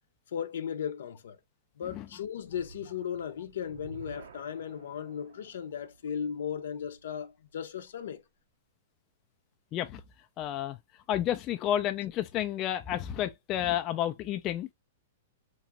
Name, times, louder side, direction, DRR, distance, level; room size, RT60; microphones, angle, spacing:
voice 1, 0.3-1.4 1.8-8.2, left 8 dB, 75° left, 0.5 m, -36 dB
sound 1, 2.4-7.7, right 5 dB, 80° right, 0.7 m, -52 dB
voice 2, 10.4-10.8 11.1-14.7, left 11 dB, 25° left, 0.3 m, -31 dB
3.0 x 2.4 x 2.8 m
hypercardioid pair, 160°, 0 cm